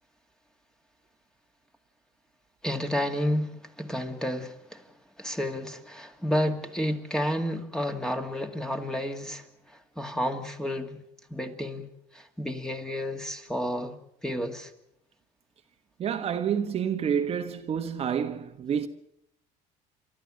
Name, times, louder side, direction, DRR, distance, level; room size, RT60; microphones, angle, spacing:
voice 1, 2.6-4.9 5.2-11.0 11.3-13.9 14.2-14.7, equal, 5° left, 2.2 m, -31 dB
voice 2, 16.0-18.9, right 8 dB, 40° right, 1.4 m, -28 dB
29.5 x 13.0 x 7.7 m
supercardioid pair, 110°, 15 cm